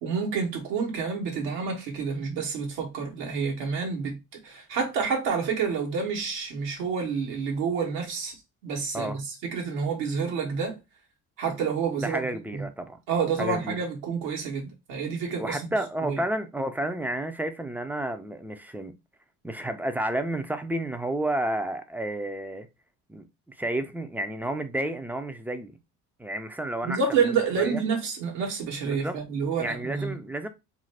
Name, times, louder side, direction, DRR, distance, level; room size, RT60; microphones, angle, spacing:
voice 1, 0.0-8.3 8.6-10.8 11.4-12.2 12.5-12.6 13.1-15.7 16.0-16.2 26.8-30.2, right 5 dB, 80° right, 1.1 m, -29 dB
voice 2, 12.0-13.0 13.4-13.8 15.4-19.0 19.4-22.7 23.1-25.8 26.2-27.3 27.6-27.8 28.8-29.2 29.6-30.5, right 1 dB, 5° right, 0.3 m, -31 dB
2.5 x 2.0 x 3.2 m
hypercardioid pair, 65°, 40 cm